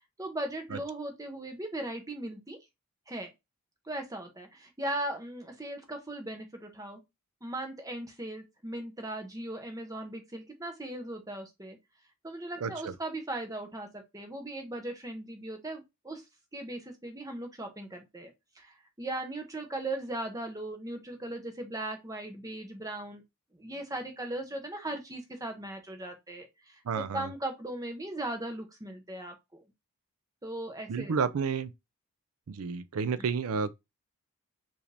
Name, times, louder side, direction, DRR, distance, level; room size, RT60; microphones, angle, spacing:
voice 1, 0.2-2.6 3.1-3.3 3.8-7.0 7.4-11.8 12.2-16.2 16.5-23.2 23.5-29.6 30.4-31.2 33.2-33.3, right 1 dB, 15° right, 0.9 m, -38 dB
voice 2, 12.6-12.9 26.9-27.3 30.9-31.7 32.5-33.7, right 5 dB, 80° right, 0.4 m, -31 dB
4.9 x 2.7 x 3.3 m
head